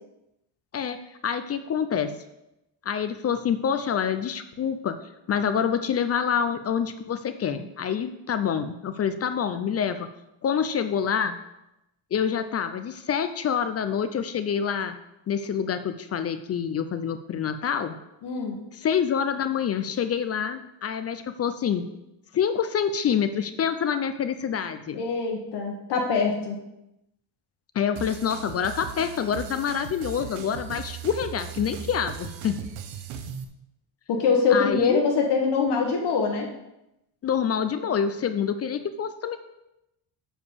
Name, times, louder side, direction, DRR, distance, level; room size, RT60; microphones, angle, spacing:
voice 1, 0.7-2.1 2.9-5.0 5.3-10.1 10.4-11.4 12.1-14.9 15.3-18.0 18.8-21.8 22.3-25.0 27.7-32.6 34.5-35.0 37.2-39.4, left 7 dB, 35° left, 10 dB, 0.4 m, -27 dB
voice 2, 18.2-18.6 24.9-26.6 34.1-36.5, left 5 dB, 60° left, 1 dB, 1.4 m, -23 dB
sound 1, 28.0-33.4, right 8 dB, 80° right, 0.9 m, -38 dB
7.2 x 5.0 x 6.8 m, 0.89 s
cardioid pair, 160°, 46 cm